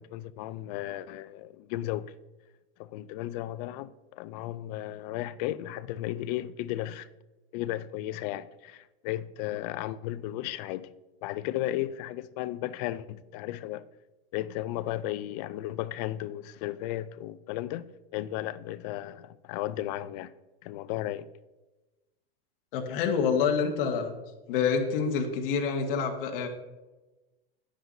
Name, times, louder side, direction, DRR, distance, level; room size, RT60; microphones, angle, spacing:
voice 1, 0.0-2.1 2.8-7.1 7.5-10.9 11.2-13.8 14.3-17.9 18.1-20.3 20.6-21.3, left 14 dB, 40° left, 0.4 m, -34 dB
voice 2, 22.7-24.1 24.5-26.5, left 6 dB, 65° left, 1.8 m, -27 dB
11.0 x 9.8 x 2.7 m
supercardioid pair, 160°, 30 cm